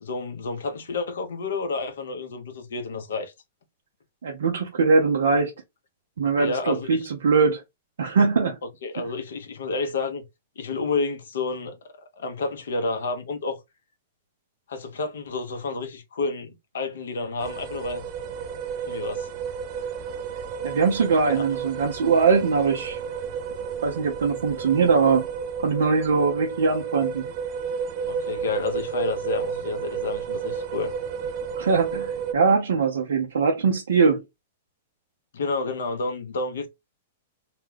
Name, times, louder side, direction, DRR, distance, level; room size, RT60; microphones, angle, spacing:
voice 1, 0.0-3.3 6.4-7.1 8.8-10.2 10.6-11.8 12.2-13.6 14.7-18.0 18.9-19.3 21.3-21.6 28.0-30.9 35.3-36.7, left 3 dB, 75° left, 0.9 m, -30 dB
voice 2, 4.2-5.5 6.2-7.6 8.0-8.6 20.6-23.0 23.8-25.3 25.6-27.3 31.6-34.2, right 5 dB, 80° right, 0.7 m, -21 dB
sound 1, 17.4-32.3, right 6 dB, 45° right, 0.5 m, -32 dB
2.9 x 2.3 x 3.3 m
hypercardioid pair, 120°, 0 cm